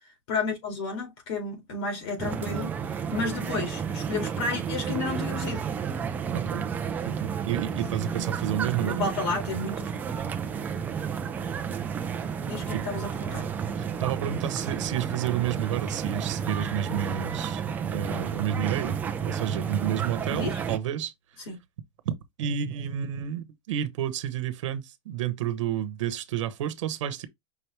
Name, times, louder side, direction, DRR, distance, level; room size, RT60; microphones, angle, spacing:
voice 1, 0.3-2.7 3.1-5.6 8.8-10.0 12.5-13.5 20.3-20.5 21.5-21.6, left 3 dB, 60° left, 2.3 m, -31 dB
sound 1, 2.2-20.8, right 7 dB, 10° right, 0.4 m, -31 dB
voice 2, 6.3-6.6 7.0-9.0 12.7-12.9 13.7-21.1 22.0-27.3, right 9 dB, 80° right, 1.0 m, -30 dB
5.3 x 3.0 x 3.3 m
supercardioid pair, 170°, 16 cm